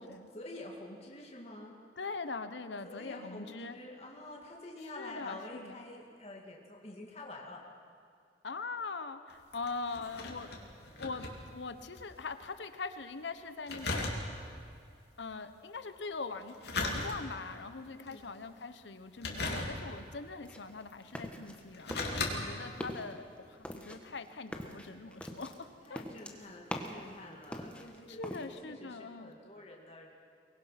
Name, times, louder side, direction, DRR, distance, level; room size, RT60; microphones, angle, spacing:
voice 1, 0.0-1.8 2.8-7.6 17.9-18.3 25.8-30.1, left 1 dB, 35° left, -2 dB, 2.4 m, -48 dB
voice 2, 2.0-3.8 4.9-5.8 8.4-10.5 11.0-14.1 15.2-26.0 28.1-29.3, left 4 dB, 80° left, 10 dB, 1.0 m, -42 dB
sound 1, 9.3-12.1 12.4-12.5 13.7-14.6 16.4-17.5 18.1-18.4 19.2-20.1 20.9-21.0 21.6-22.3 22.8-22.9, left 2 dB, 65° left, 2.9 m, -37 dB
sound 2, 20.4-21.6 21.9-22.4 22.7-23.1 23.6-27.1 27.4-28.4, equal, 5° left, 1.4 m, -42 dB
23.5 x 20.5 x 5.9 m, 2.4 s
head